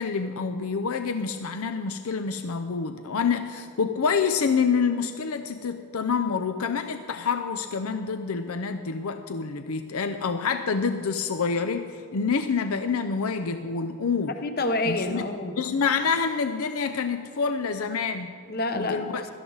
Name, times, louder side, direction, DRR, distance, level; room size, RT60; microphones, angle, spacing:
voice 1, 0.0-14.4 14.9-15.2 15.6-18.3 18.7-19.2, left 5 dB, 80° left, 8 dB, 0.6 m, -27 dB
voice 2, 14.3-15.5 18.5-19.3, left 2 dB, 45° left, 7 dB, 1.0 m, -28 dB
17.0 x 13.0 x 4.0 m, 2.3 s
head